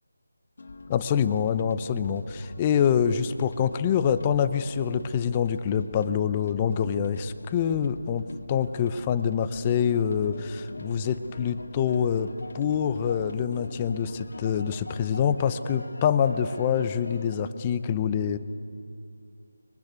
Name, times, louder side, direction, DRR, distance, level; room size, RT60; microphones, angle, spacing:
sound 1, 0.6-15.1, left 2 dB, 50° left, 1.9 m, -46 dB
voice 1, 0.9-18.4, left 8 dB, 15° left, 11 dB, 0.7 m, -26 dB
sound 2, 9.8-17.4, left 2 dB, 85° left, 2.7 m, -44 dB
23.5 x 23.5 x 9.5 m, 2.3 s
figure-of-eight pair, 170°, 0 cm